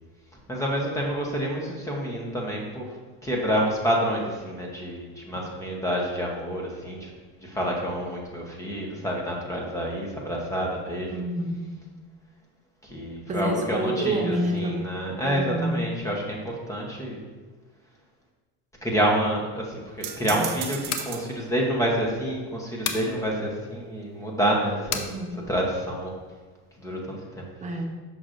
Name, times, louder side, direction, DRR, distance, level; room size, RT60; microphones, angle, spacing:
voice 1, 0.5-2.9 3.2-7.1 7.4-11.1 12.8-17.2 18.8-25.1 25.5-26.1 26.8-27.4, equal, 5° left, -2 dB, 0.9 m, -28 dB
voice 2, 11.1-11.7 13.3-14.9 15.2-15.8 20.3-20.5 24.9-25.4 27.6-27.8, right 1 dB, 20° right, 2 dB, 0.6 m, -28 dB
sound 1, 20.0-21.3, right 10 dB, 65° right, 0.7 m, -35 dB
sound 2, 20.9-21.1 22.8-23.1 24.9-25.1, left 7 dB, 65° left, 0.7 m, -30 dB
6.2 x 5.9 x 2.6 m, 1.4 s
cardioid pair, 145°, 43 cm